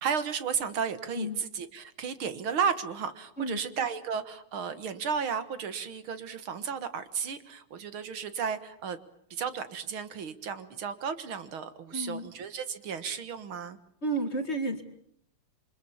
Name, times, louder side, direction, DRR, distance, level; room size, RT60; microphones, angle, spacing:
voice 1, 0.0-9.0 9.3-13.8, right 6 dB, 70° right, 12 dB, 2.3 m, -33 dB
voice 2, 11.9-12.3 14.0-14.8, right 2 dB, 30° left, 9 dB, 2.1 m, -31 dB
28.0 x 24.5 x 7.2 m, 0.67 s
omnidirectional pair, 2.4 m